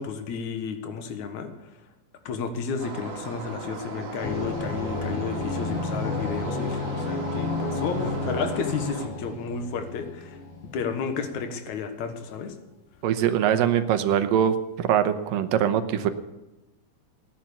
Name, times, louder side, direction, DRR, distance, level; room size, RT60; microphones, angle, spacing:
voice 1, 0.0-1.5 2.3-10.4 10.7-12.6, left 6 dB, 65° left, 7 dB, 2.6 m, -32 dB
sound 1, 2.8-9.1, right 4 dB, 50° right, 2.8 m, -38 dB
sound 2, 4.2-11.6, left 3 dB, 50° left, 3.0 m, -32 dB
voice 2, 13.0-16.1, right 9 dB, 85° right, 9 dB, 2.6 m, -23 dB
17.5 x 10.5 x 6.9 m, 0.99 s
omnidirectional pair, 3.9 m